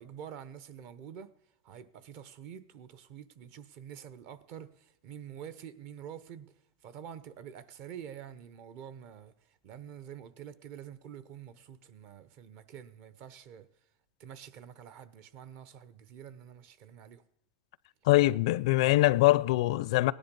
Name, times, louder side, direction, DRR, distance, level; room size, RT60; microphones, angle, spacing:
voice 1, 0.0-1.3 1.6-6.5 6.8-9.3 9.6-13.7 14.2-17.2, right 9 dB, 50° right, 0.9 m, -47 dB
voice 2, 18.0-20.1, left 18 dB, 70° left, 0.5 m, -23 dB
17.5 x 10.5 x 5.3 m
supercardioid pair, 145°, 3 cm